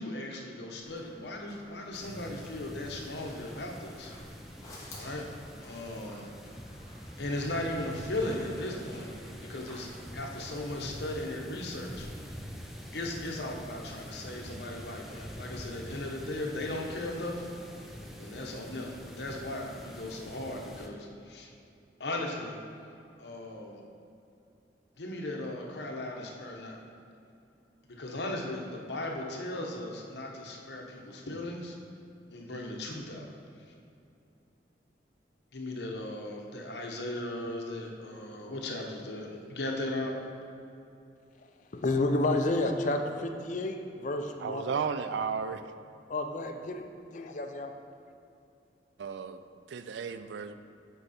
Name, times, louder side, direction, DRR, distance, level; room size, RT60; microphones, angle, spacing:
voice 1, 0.0-4.1 5.0-5.2 5.6-6.3 7.2-9.1 9.5-12.1 12.9-17.5 18.2-21.5 22.0-22.6 23.2-23.8 25.0-26.8 27.9-31.8 32.3-33.3 35.5-40.2, left 1 dB, 70° left, 1 dB, 1.0 m, -37 dB
sound 1, 0.7-11.1, left 1 dB, 20° left, 1.3 m, -54 dB
sound 2, 1.9-20.9, equal, ahead, 0.5 m, -45 dB
voice 2, 41.7-44.6 46.1-46.8 47.1-47.7, left 2 dB, 45° left, 5 dB, 0.5 m, -30 dB
voice 3, 44.4-45.6 49.0-49.4 49.7-50.5, right 6 dB, 85° right, 10 dB, 0.4 m, -33 dB
8.1 x 4.7 x 4.2 m, 2.6 s
head